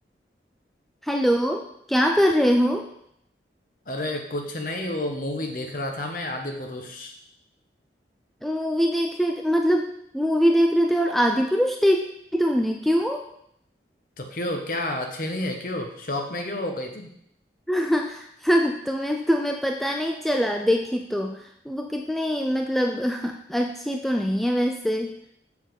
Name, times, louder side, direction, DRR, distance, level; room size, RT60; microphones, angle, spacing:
voice 1, 1.0-1.6 1.9-2.8 8.4-12.0 12.3-13.2 17.7-21.4 21.7-25.1, equal, ahead, 3 dB, 0.4 m, -23 dB
voice 2, 3.9-7.1 14.2-17.1, left 1 dB, 50° left, 4 dB, 1.0 m, -30 dB
7.0 x 6.3 x 3.7 m, 0.72 s
head